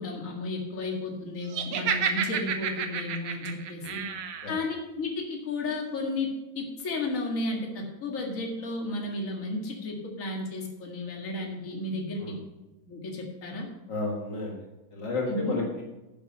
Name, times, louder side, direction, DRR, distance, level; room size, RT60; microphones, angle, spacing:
voice 1, 0.0-4.0 4.5-6.3 6.6-12.4 12.9-13.7 15.3-15.6, left 2 dB, 40° left, 0 dB, 2.4 m, -33 dB
Laughter, 1.5-4.5, right 7 dB, 90° right, 1.9 m, -30 dB
voice 2, 13.9-14.6 14.9-15.8, left 2 dB, 60° left, -2 dB, 2.4 m, -32 dB
10.5 x 8.6 x 5.7 m, 1.1 s
omnidirectional pair, 2.3 m